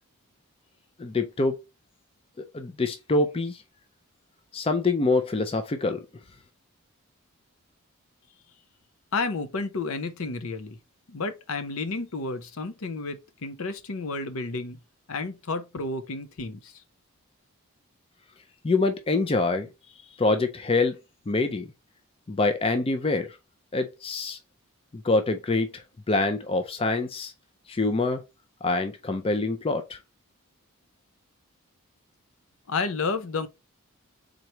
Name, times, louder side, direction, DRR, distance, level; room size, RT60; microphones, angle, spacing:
voice 1, 1.0-1.6 2.4-3.6 4.5-6.1 18.6-19.7 20.2-21.0 21.3-21.7 22.3-23.4 23.7-24.4 24.9-27.3 27.7-28.2 28.6-30.0, left 3 dB, 25° left, 0.4 m, -25 dB
voice 2, 9.1-10.8 11.1-14.8 15.1-16.7 32.7-33.5, left 3 dB, 70° left, 0.7 m, -31 dB
3.9 x 3.0 x 4.4 m
head